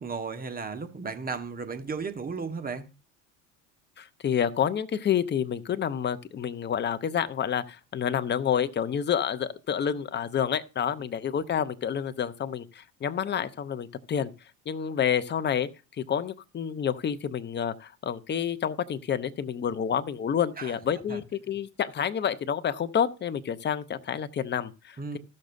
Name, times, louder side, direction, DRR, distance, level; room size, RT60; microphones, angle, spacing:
voice 1, 0.0-2.9 20.6-20.8 21.1-21.2 25.0-25.2, right 4 dB, 25° right, 1.3 m, -34 dB
voice 2, 4.0-14.3 14.7-15.7 16.0-25.2, left 8 dB, 30° left, 0.8 m, -29 dB
14.5 x 6.5 x 2.6 m
supercardioid pair, 85°, 38 cm